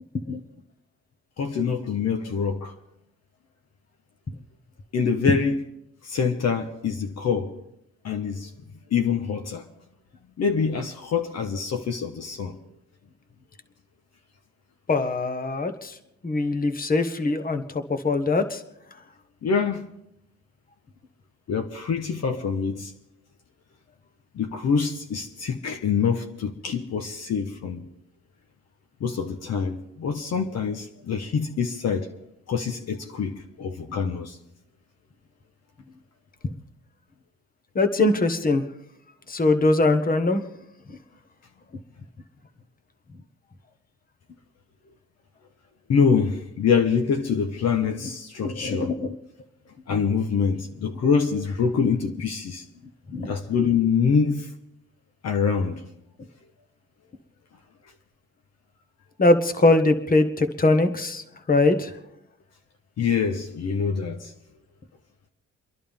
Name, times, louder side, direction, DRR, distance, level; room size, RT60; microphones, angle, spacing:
voice 1, 1.4-2.7 4.9-5.6 6.0-7.5 8.0-8.5 8.9-9.6 10.4-12.6 19.4-19.9 21.5-22.9 24.3-27.8 29.0-32.1 32.5-34.4 45.9-48.9 49.9-52.6 53.2-54.5 55.2-55.8 63.0-64.3, left 6 dB, 60° left, 1.2 m, -25 dB
voice 2, 14.9-15.9 16.2-18.6 37.7-38.6 39.3-40.4 48.4-49.2 53.1-53.3 59.2-61.9, left 2 dB, 30° left, 1.5 m, -22 dB
29.5 x 11.0 x 3.6 m
cardioid pair, 90°, 30 cm